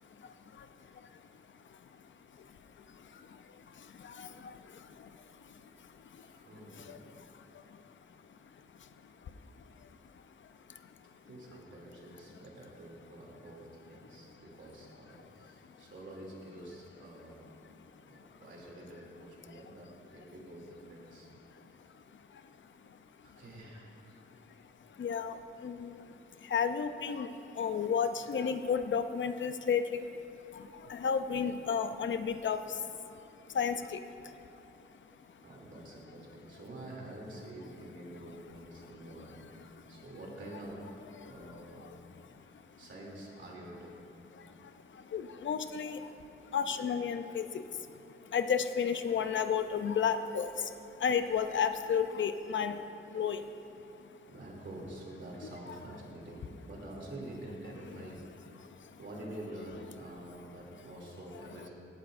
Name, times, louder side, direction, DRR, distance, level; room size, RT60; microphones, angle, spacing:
voice 1, 0.0-11.1 15.1-15.9 17.6-18.4 19.5-19.6 21.5-23.4 24.1-35.5 38.2-38.4 38.7-40.0 41.2-42.9 44.3-54.3 58.6-59.0, left 7 dB, 65° left, 9 dB, 0.6 m, -36 dB
voice 2, 6.2-7.1 11.2-17.5 18.1-21.3 23.2-23.9 35.4-41.9 42.4-44.0 54.3-58.2 58.6-58.7 59.0-61.7, right 1 dB, 65° right, -3 dB, 2.8 m, -47 dB
17.0 x 11.5 x 2.6 m, 2.9 s
wide cardioid pair, 110°, 21 cm